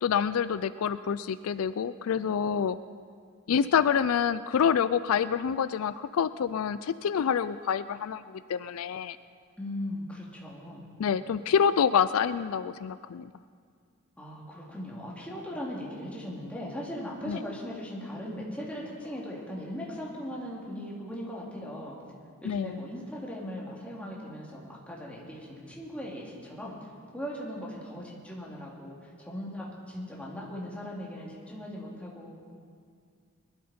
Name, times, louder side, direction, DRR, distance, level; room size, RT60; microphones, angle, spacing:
voice 1, 0.0-2.8 3.5-9.2 11.0-13.3 17.3-17.4 22.4-22.8, left 7 dB, 75° left, 14 dB, 0.4 m, -27 dB
voice 2, 9.6-10.8 14.2-22.0 22.4-32.3, equal, 5° left, -5 dB, 2.7 m, -39 dB
21.5 x 12.5 x 4.3 m, 2.1 s
head